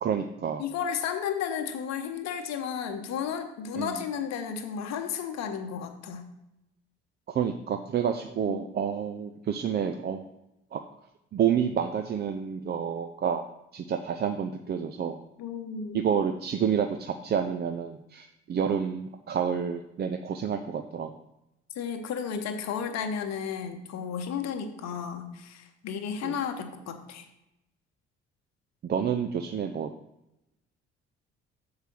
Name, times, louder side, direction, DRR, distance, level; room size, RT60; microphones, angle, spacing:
voice 1, 0.0-0.6 3.8-4.0 7.3-10.3 10.7-10.8 11.3-13.4 13.7-15.2 15.9-21.1 26.2-26.4 28.8-29.9, right 8 dB, 30° right, 6 dB, 0.5 m, -29 dB
voice 2, 0.6-6.3 8.5-8.6 15.4-16.0 21.8-27.3, left 7 dB, 55° left, 6 dB, 1.1 m, -33 dB
6.7 x 4.8 x 6.0 m, 0.89 s
figure-of-eight pair, 50°, 33 cm